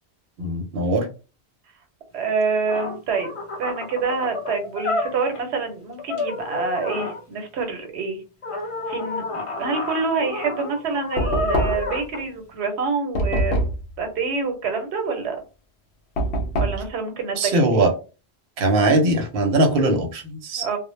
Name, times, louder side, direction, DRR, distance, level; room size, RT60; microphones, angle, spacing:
voice 1, 0.4-1.1 17.4-17.9 18.6-20.8, right 2 dB, 65° right, 4 dB, 0.8 m, -20 dB
voice 2, 2.1-3.3 3.6-8.2 8.9-13.6 14.0-15.4 16.5-17.9 20.6-20.8, right 4 dB, 90° right, 5 dB, 0.9 m, -26 dB
sound 1, 2.4-2.5 2.7-5.5 6.0-7.2 8.4-12.2, left 2 dB, 55° left, 0.3 m, -30 dB
Knock, 11.2-12.0 13.2-13.9 16.2-16.9, equal, 85° left, 0.9 m, -23 dB
2.0 x 2.0 x 3.0 m, 0.33 s
omnidirectional pair, 1.1 m